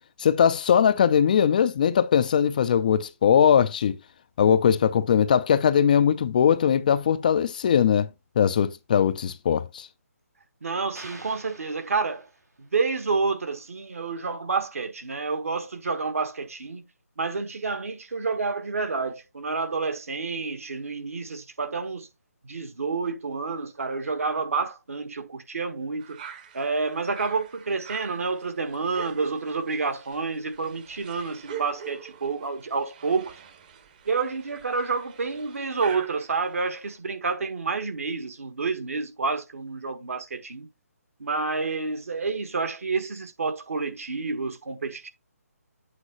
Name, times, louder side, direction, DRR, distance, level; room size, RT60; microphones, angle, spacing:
voice 1, 0.2-4.0 4.4-8.1 8.4-9.9, left 8 dB, 30° left, 0.4 m, -20 dB
voice 2, 10.6-12.3 12.6-16.8 17.2-22.1 22.4-26.2 26.5-33.3 34.1-40.7 41.2-45.1, right 4 dB, 60° right, 1.4 m, -29 dB
sound 1, 10.9-12.7, right 2 dB, 85° right, 2.2 m, -46 dB
sound 2, 26.0-37.0, right 8 dB, 30° right, 0.9 m, -44 dB
8.5 x 3.6 x 4.2 m
figure-of-eight pair, 145°, 9 cm